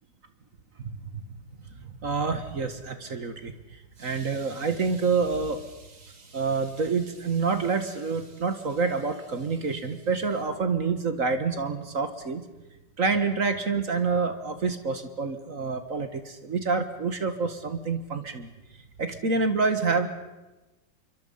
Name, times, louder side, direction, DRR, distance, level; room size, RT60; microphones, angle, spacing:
voice 1, 0.8-1.2 2.0-3.5 4.0-12.4 13.0-18.5 19.0-20.1, right 4 dB, 45° right, 9 dB, 1.8 m, -27 dB
26.5 x 24.0 x 5.6 m, 1.1 s
omnidirectional pair, 2.1 m